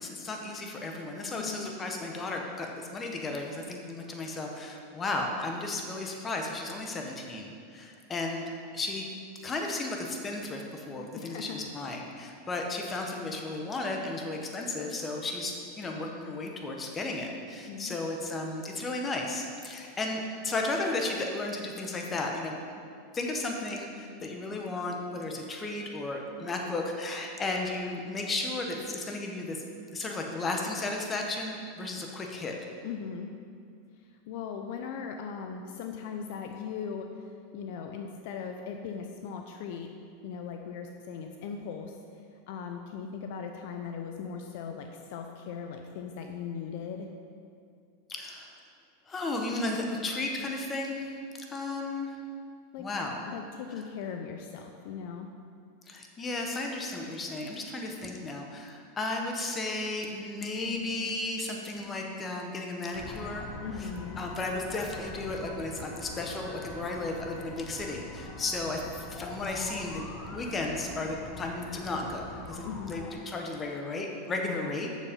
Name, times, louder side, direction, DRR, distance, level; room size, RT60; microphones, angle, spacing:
voice 1, 0.0-8.4 8.7-9.1 9.4-22.6 23.1-29.6 29.9-32.5 48.1-48.5 49.1-51.2 51.5-52.2 52.8-53.3 53.7-53.8 55.9-63.5 63.8-63.9 64.2-70.0 70.3-75.0, left 2 dB, 25° left, 1 dB, 1.3 m, -34 dB
voice 2, 1.4-1.7 11.2-11.7 12.2-12.4 17.7-18.0 32.8-33.3 34.3-37.1 37.5-39.9 40.2-42.0 42.5-47.1 52.7-52.9 53.3-55.3 63.6-64.2 72.6-73.0 74.4-74.7, left 6 dB, 65° left, 4 dB, 0.6 m, -39 dB
sound 1, 62.9-73.1, left 2 dB, 40° left, 1.1 m, -43 dB
7.3 x 6.7 x 5.3 m, 2.3 s
hypercardioid pair, 110°, 0 cm